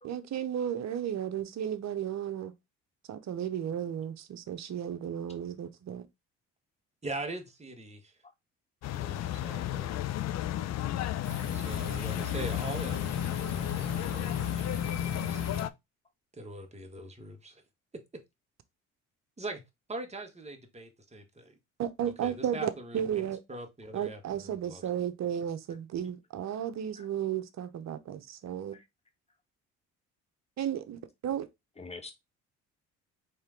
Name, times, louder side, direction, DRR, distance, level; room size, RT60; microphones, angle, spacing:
voice 1, 0.0-2.5 3.1-6.1 21.8-23.4 23.9-28.7 30.6-31.5, right 9 dB, 50° right, 0.8 m, -34 dB
voice 2, 7.0-8.1 8.9-10.0 11.5-14.7 15.0-15.4 16.3-17.6 19.4-19.6 19.9-21.6 22.2-25.0, right 2 dB, 20° right, 1.5 m, -42 dB
sound 1, 8.8-15.7, left 12 dB, 50° left, 0.5 m, -32 dB
sound 2, 11.2-15.6, right 2 dB, 65° left, 2.1 m, -43 dB
voice 3, 31.8-32.1, left 3 dB, 15° left, 1.4 m, -46 dB
4.3 x 3.3 x 3.7 m
hypercardioid pair, 60°, 35 cm